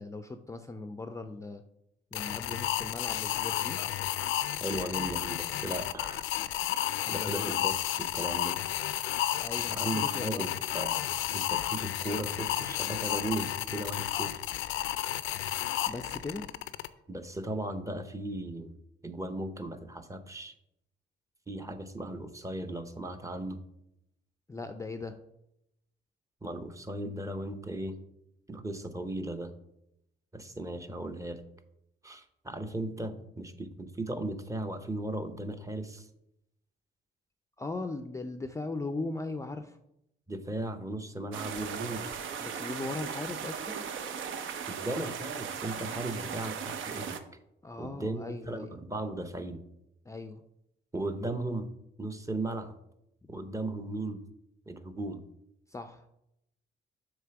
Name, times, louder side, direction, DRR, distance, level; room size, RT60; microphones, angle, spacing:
voice 1, 0.0-1.6 2.1-3.8 7.0-7.5 9.4-10.5 15.9-16.5 24.5-25.2 37.6-39.8 42.4-43.8 47.6-48.8 50.1-50.4 53.2-53.3 55.7-56.0, left 3 dB, 15° left, 8 dB, 0.4 m, -39 dB
sound 1, 2.1-16.9, left 13 dB, 85° left, 0.4 m, -32 dB
voice 2, 4.6-6.2 7.1-8.6 9.7-14.5 17.1-18.8 19.0-20.5 21.5-23.6 26.4-28.0 28.5-29.5 30.3-31.4 32.0-36.1 40.3-42.0 44.7-47.2 47.8-49.6 50.9-51.7 52.0-52.7 53.3-54.2 54.7-55.2, right 1 dB, 15° right, 9 dB, 0.7 m, -36 dB
sound 2, 41.3-47.2, right 7 dB, 75° right, 0.7 m, -37 dB
7.2 x 3.4 x 5.8 m, 0.83 s
cardioid pair, 90°, 20 cm